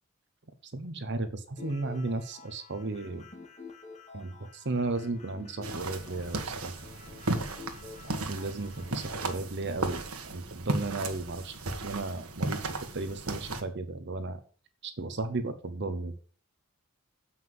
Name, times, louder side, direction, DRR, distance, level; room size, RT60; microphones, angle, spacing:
voice 1, 0.7-3.3 4.1-6.7 8.0-11.5 11.8-14.4 14.8-16.2, right 3 dB, 50° right, 10 dB, 0.9 m, -34 dB
sound 1, 1.6-9.4, left 4 dB, 30° left, 1.9 m, -49 dB
sound 2, 5.6-13.6, right 2 dB, 90° right, 1.4 m, -35 dB
7.8 x 5.7 x 7.6 m, 0.42 s
head